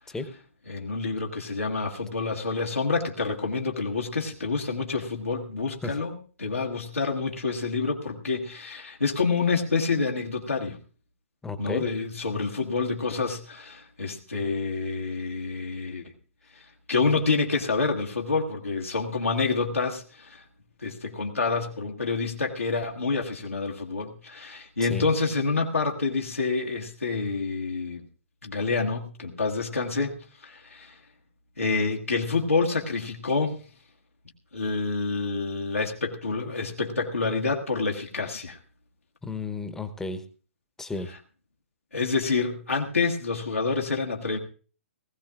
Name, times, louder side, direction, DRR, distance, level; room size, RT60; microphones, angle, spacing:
voice 1, 0.7-10.8 11.6-16.1 16.9-20.4 20.8-28.0 28.4-30.2 30.4-30.9 31.6-33.6 34.5-38.6 41.9-44.4, left 4 dB, 80° left, 0 dB, 1.6 m, -28 dB
voice 2, 11.4-11.9 24.8-25.1 39.2-40.2 40.8-41.1, left 3 dB, 5° left, 10 dB, 0.9 m, -33 dB
19.5 x 15.0 x 2.4 m, 0.38 s
figure-of-eight pair, 120°, 7 cm